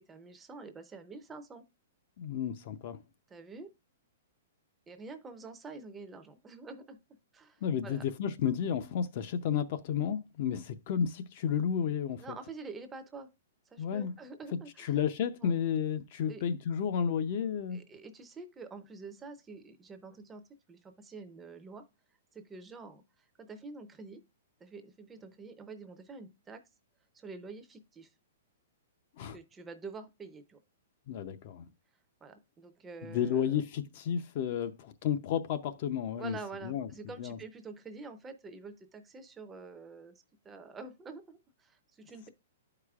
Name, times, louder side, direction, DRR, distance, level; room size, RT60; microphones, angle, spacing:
voice 1, 0.0-1.6 3.3-3.7 4.9-7.0 7.3-8.0 12.2-13.3 13.7-15.0 15.4-15.5 16.3-16.4 17.7-20.4 20.7-21.8 22.3-23.0 23.4-24.2 24.6-26.6 27.1-28.1 29.3-30.6 32.2-33.6 36.2-42.3, right 4 dB, 10° right, 0.6 m, -47 dB
voice 2, 2.2-3.0 7.6-12.2 13.8-14.1 14.8-17.8 29.2-29.4 31.1-31.6 33.0-36.4 36.6-36.9 37.2-37.4, left 8 dB, 40° left, 0.5 m, -32 dB
11.5 x 4.8 x 2.3 m
hypercardioid pair, 165°, 0 cm